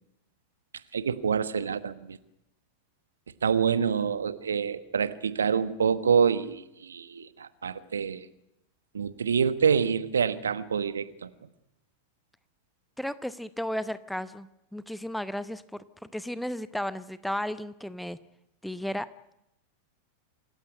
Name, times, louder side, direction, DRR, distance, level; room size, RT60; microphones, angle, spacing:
voice 1, 0.9-2.2 3.4-8.3 8.9-11.3, right 6 dB, 70° right, 13 dB, 1.2 m, -26 dB
voice 2, 13.0-15.8 16.1-18.2 18.6-19.1, equal, ahead, 15 dB, 0.8 m, -34 dB
27.0 x 15.5 x 9.7 m, 0.86 s
figure-of-eight pair, 90°, 0 cm